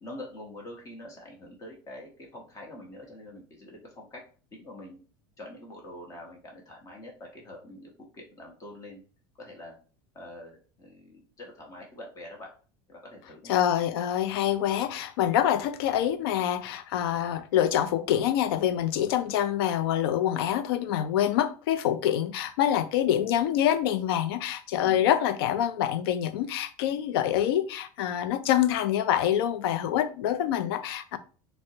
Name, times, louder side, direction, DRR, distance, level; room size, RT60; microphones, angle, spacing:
voice 1, 0.0-4.2 4.5-5.0 5.4-9.0 9.4-9.7 10.1-12.5 12.9-13.5 24.8-25.0, left 1 dB, 25° left, 0.9 m, -45 dB
voice 2, 13.5-31.2, left 10 dB, 85° left, 0.4 m, -26 dB
4.3 x 2.0 x 2.7 m
supercardioid pair, 140°, 12 cm